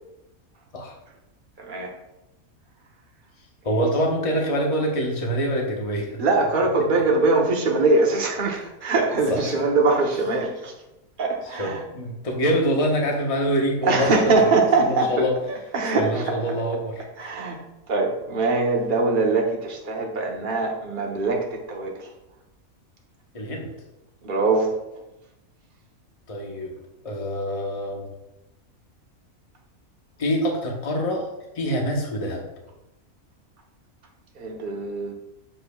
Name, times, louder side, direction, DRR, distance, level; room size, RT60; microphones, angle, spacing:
voice 1, 1.6-1.9 6.2-10.7 11.2-11.8 13.8-15.2 15.7-16.5 17.2-22.1 24.2-24.7 34.3-35.1, right 3 dB, 40° right, 0 dB, 1.1 m, -22 dB
voice 2, 3.6-6.2 9.3-9.5 11.6-14.3 14.8-15.3 16.0-17.3 23.3-23.7 26.3-26.7 27.0-28.0 30.2-31.3 31.5-32.5, equal, 25° left, 0 dB, 1.1 m, -25 dB
7.6 x 6.8 x 2.3 m, 0.94 s
omnidirectional pair, 1.5 m